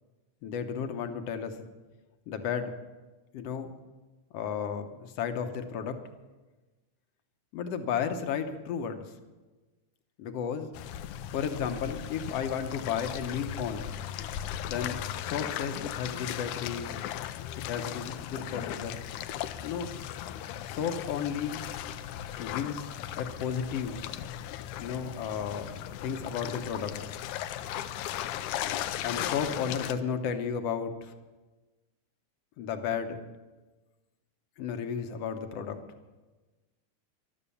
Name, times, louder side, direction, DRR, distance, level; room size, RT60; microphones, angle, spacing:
voice 1, 0.4-1.7 2.3-2.7 3.3-3.7 4.3-6.0 7.5-9.0 10.2-10.7 11.3-13.9 14.6-16.9 17.6-19.1 19.6-19.9 20.7-21.6 22.4-24.1 24.8-27.0 29.0-31.1 32.6-33.2 34.6-35.8, left 7 dB, 65° left, 8 dB, 1.8 m, -33 dB
sound 1, 10.7-29.9, left 11 dB, 90° left, 2.1 m, -37 dB
14.0 x 12.0 x 7.1 m, 1.2 s
omnidirectional pair, 3.5 m